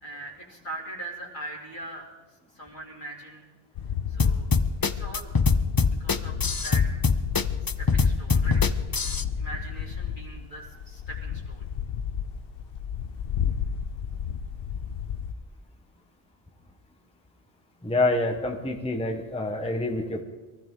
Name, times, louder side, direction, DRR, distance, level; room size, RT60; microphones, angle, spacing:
voice 1, 0.0-2.1 2.5-3.4 4.1-4.5 4.8-5.4 5.8-6.9 7.8-9.0 9.4-11.7, right 2 dB, 50° left, -3 dB, 2.7 m, -41 dB
sound 1, 3.8-15.3, left 8 dB, 70° left, 0.9 m, -32 dB
sound 2, 4.2-9.2, left 4 dB, 35° left, 0.4 m, -23 dB
voice 2, 17.8-20.2, left 2 dB, 5° left, 3 dB, 1.1 m, -27 dB
23.0 x 14.5 x 3.8 m, 1.3 s
omnidirectional pair, 1.0 m